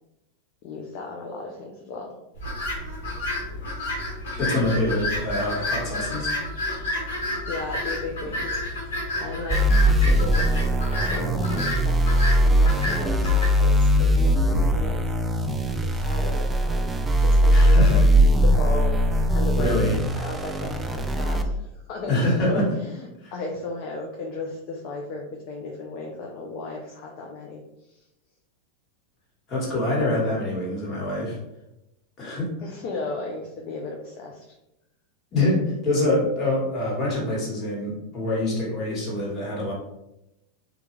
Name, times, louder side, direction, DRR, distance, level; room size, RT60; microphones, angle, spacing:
voice 1, 0.6-2.1 7.5-9.6 9.9-16.9 17.2-18.1 18.4-19.8 20.2-22.1 22.5-27.6 27.9-28.0 32.6-34.4, left 3 dB, 55° left, 0 dB, 0.4 m, -35 dB
sound 1, 2.4-13.5, left 1 dB, 80° left, 1.1 m, -30 dB
voice 2, 4.4-6.3 17.5-18.0 19.6-19.9 22.1-22.7 23.2-23.3 29.5-31.4 32.2-32.5 35.3-39.7, left 1 dB, 40° left, -4 dB, 1.3 m, -25 dB
sound 2, 9.5-21.4, equal, 15° right, 0.3 m, -20 dB
2.3 x 2.2 x 3.1 m, 0.89 s
hypercardioid pair, 105°, 0 cm